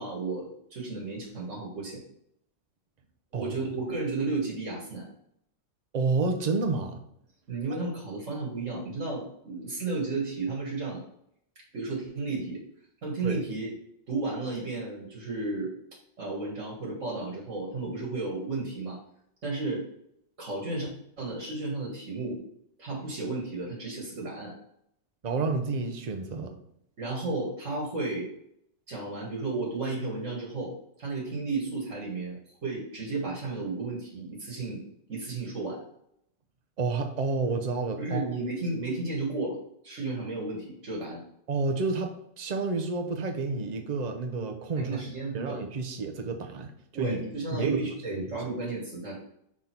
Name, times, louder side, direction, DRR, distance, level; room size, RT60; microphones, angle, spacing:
voice 1, 0.0-2.0 3.3-5.1 7.5-11.1 11.7-12.6 13.0-13.7 14.1-15.7 16.2-19.0 19.4-19.8 20.4-20.9 21.2-22.4 22.8-24.5 27.0-28.3 28.9-30.7 31.0-34.8 35.1-35.8 38.0-39.6 39.8-41.2 44.8-45.6 46.9-49.2, right 3 dB, 75° right, -3 dB, 1.9 m, -33 dB
voice 2, 5.9-7.0 13.2-13.4 25.2-26.6 36.8-38.3 41.5-45.0 45.3-46.7 47.0-47.2 47.5-47.8 48.1-48.2, right 3 dB, 40° right, 4 dB, 0.8 m, -30 dB
6.2 x 3.6 x 4.4 m, 0.73 s
omnidirectional pair, 1.3 m